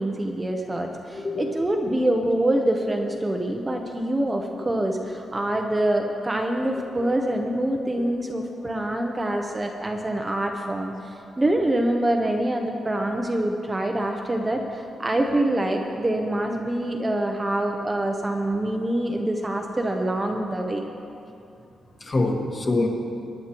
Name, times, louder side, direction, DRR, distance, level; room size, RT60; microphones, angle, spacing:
voice 1, 0.0-20.8, right 1 dB, 15° right, 2 dB, 0.7 m, -25 dB
voice 2, 1.1-1.7 4.8-4.9 22.0-22.9, left 2 dB, 30° left, 0 dB, 1.5 m, -25 dB
24.5 x 9.7 x 3.0 m, 2.7 s
wide cardioid pair, 140°, 0 cm